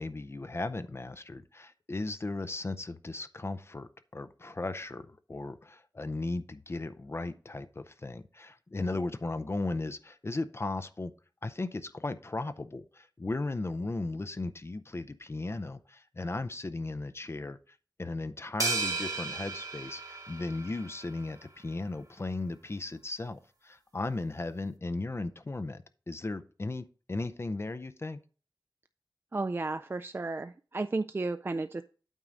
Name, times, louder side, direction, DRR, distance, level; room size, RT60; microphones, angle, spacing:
voice 1, 0.0-11.1 11.4-28.2, left 2 dB, 35° left, 11 dB, 0.5 m, -36 dB
sound 1, 18.6-21.1, right 3 dB, 55° right, 1.4 m, -34 dB
voice 2, 29.3-31.8, right 3 dB, 30° right, 10 dB, 0.3 m, -33 dB
9.0 x 3.9 x 6.2 m, 0.38 s
wide cardioid pair, 95°, 8 cm